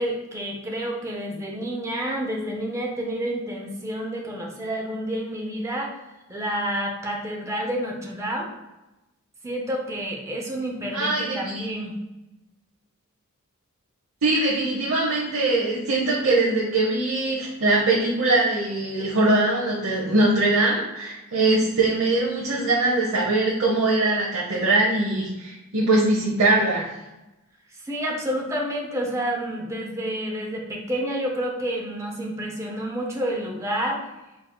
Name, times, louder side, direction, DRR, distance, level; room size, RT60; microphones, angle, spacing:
voice 1, 0.0-6.0 6.3-8.5 9.4-11.9 27.8-34.0, equal, 15° right, 0 dB, 0.5 m, -29 dB
voice 2, 10.9-11.6 14.2-26.8, right 2 dB, 65° right, -6 dB, 0.8 m, -22 dB
4.3 x 4.1 x 2.2 m, 0.99 s
head